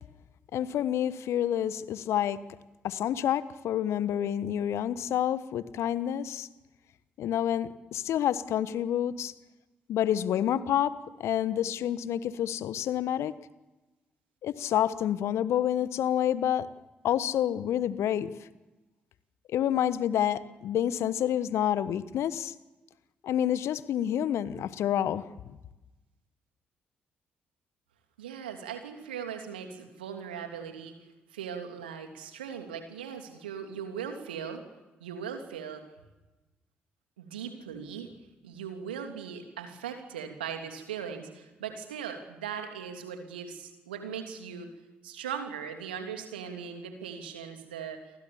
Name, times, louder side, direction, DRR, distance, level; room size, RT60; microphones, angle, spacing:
voice 1, 0.5-2.4 2.8-6.5 7.2-9.3 9.9-10.9 11.2-13.3 14.4-16.7 17.0-18.3 19.5-22.5 23.2-25.3, left 10 dB, 60° left, 15 dB, 1.2 m, -28 dB
voice 2, 28.2-30.9 31.3-34.6 35.0-35.8 37.2-38.1 38.4-44.7 45.0-48.1, right 7 dB, 80° right, 5 dB, 3.0 m, -39 dB
29.0 x 23.5 x 7.2 m, 1.1 s
figure-of-eight pair, 40°, 5 cm